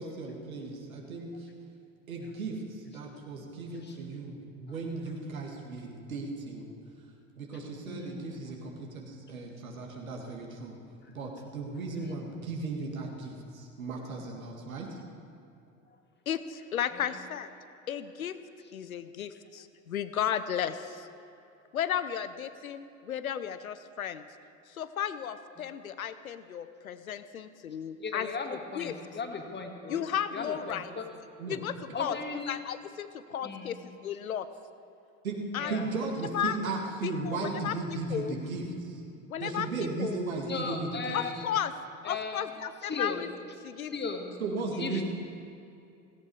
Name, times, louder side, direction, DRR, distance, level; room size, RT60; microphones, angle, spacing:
voice 1, 0.0-1.5 2.1-6.7 7.4-10.7 11.1-14.9 31.4-31.6 35.2-35.4 35.7-39.0 39.4-41.2 44.4-45.0, right 3 dB, 75° right, 0 dB, 2.2 m, -36 dB
voice 2, 7.9-8.4 11.0-11.1 12.0-12.2 13.2-13.3 16.9-17.2 25.6-25.7 28.0-30.0 30.3-31.1 31.9-32.6 33.4-33.7 35.6-35.9 40.5-41.5 42.0-42.4 42.8-43.2 43.8-44.4 44.8-45.0, left 4 dB, 25° left, 4 dB, 1.9 m, -37 dB
voice 3, 16.3-17.5 17.9-18.4 18.7-21.1 21.7-24.2 24.7-29.0 29.9-30.9 31.5-32.2 32.5-34.5 35.5-35.7 36.3-36.6 37.0-38.3 39.3-40.2 41.1-41.7 42.0-43.3 43.6-43.9 44.7-45.0, left 9 dB, 80° left, 13 dB, 0.8 m, -34 dB
16.5 x 16.5 x 4.8 m, 2.6 s
figure-of-eight pair, 65°, 42 cm